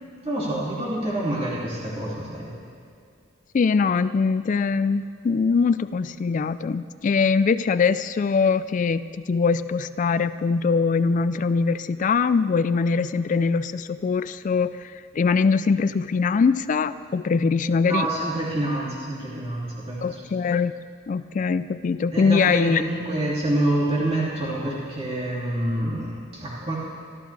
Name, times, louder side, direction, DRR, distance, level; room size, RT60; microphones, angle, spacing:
voice 1, 0.2-2.5 17.8-20.2 22.1-26.8, right 1 dB, 30° right, -7 dB, 2.6 m, -27 dB
voice 2, 3.5-18.1 20.0-20.7 21.1-22.8, left 5 dB, 40° left, 14 dB, 0.3 m, -22 dB
27.0 x 13.0 x 3.4 m, 2.4 s
head